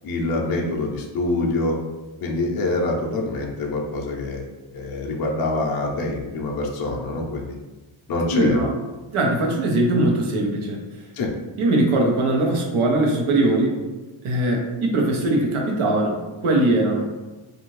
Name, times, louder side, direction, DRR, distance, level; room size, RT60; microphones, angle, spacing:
voice 1, 0.0-1.8 2.2-4.4 4.7-7.5 8.1-8.7 11.1-11.3, left 2 dB, 50° left, -1 dB, 0.5 m, -25 dB
voice 2, 8.3-8.7 9.1-10.8 11.6-13.8 14.2-17.0, right 2 dB, 85° right, 0 dB, 0.8 m, -21 dB
2.7 x 2.4 x 3.0 m, 1.2 s
wide cardioid pair, 170°, 49 cm